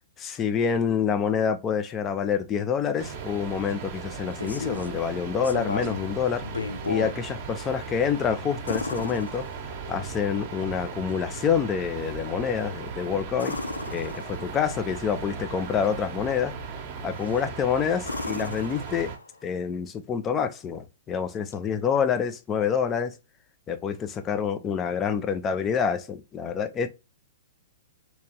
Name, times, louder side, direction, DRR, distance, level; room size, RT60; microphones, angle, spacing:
voice 1, 0.2-6.5 6.8-9.5 9.9-13.6 13.9-16.5 17.0-19.1 19.4-23.2 23.7-26.9, left 7 dB, 20° left, 0.4 m, -27 dB
sound 1, 3.0-19.2, right 5 dB, 35° right, 0.9 m, -37 dB
sound 2, 4.1-5.0 5.4-6.1 6.4-7.2 8.7-9.9 13.3-14.6 17.1-17.5 18.0-19.4 21.5-21.6, left 3 dB, 80° left, 0.5 m, -34 dB
3.3 x 2.9 x 2.8 m
figure-of-eight pair, 110°, 0 cm